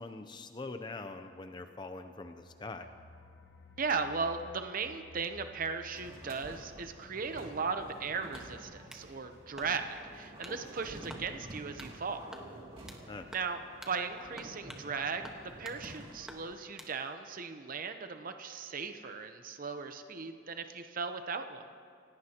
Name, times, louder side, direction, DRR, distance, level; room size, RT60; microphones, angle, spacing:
voice 1, 0.0-2.9 13.1-13.3, left 3 dB, 25° left, 7 dB, 0.6 m, -43 dB
sound 1, 2.2-12.6 12.9-13.0 13.4-13.5, equal, 75° left, 1.3 m, -59 dB
voice 2, 3.8-12.2 13.3-13.6 13.9-21.7, right 5 dB, 50° right, 8 dB, 0.8 m, -37 dB
sound 2, 5.9-16.5, right 1 dB, 30° right, 2.5 m, -50 dB
sound 3, 8.3-9.1 9.6-10.0 10.4-10.6 11.1-11.3 11.8-12.0 12.3-13.0 13.3-13.5 13.8-14.0 14.4-14.9 15.2-15.8 16.3-16.9, equal, 5° right, 1.3 m, -50 dB
28.0 x 17.5 x 2.9 m, 2.2 s
head